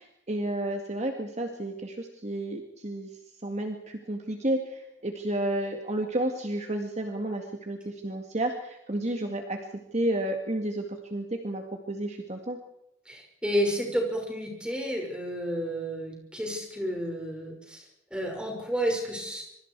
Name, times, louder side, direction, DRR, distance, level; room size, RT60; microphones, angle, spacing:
voice 1, 0.0-3.1 3.4-9.6 9.9-12.6, right 1 dB, 35° right, 3 dB, 2.0 m, -31 dB
voice 2, 13.1-17.8 18.1-19.4, equal, 5° right, 1 dB, 5.9 m, -31 dB
26.0 x 24.0 x 4.8 m, 0.80 s
head